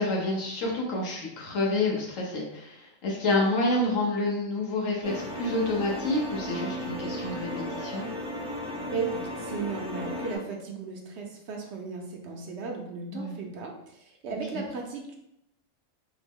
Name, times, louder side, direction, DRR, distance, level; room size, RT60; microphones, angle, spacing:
voice 1, 0.0-8.0 13.1-13.4, left 2 dB, 85° left, -2 dB, 1.3 m, -28 dB
sound 1, 5.0-10.4, equal, 5° right, 0.5 m, -35 dB
voice 2, 8.9-13.7 14.1-15.1, right 5 dB, 65° right, 1 dB, 0.9 m, -35 dB
3.4 x 2.0 x 3.5 m, 0.80 s
omnidirectional pair, 1.3 m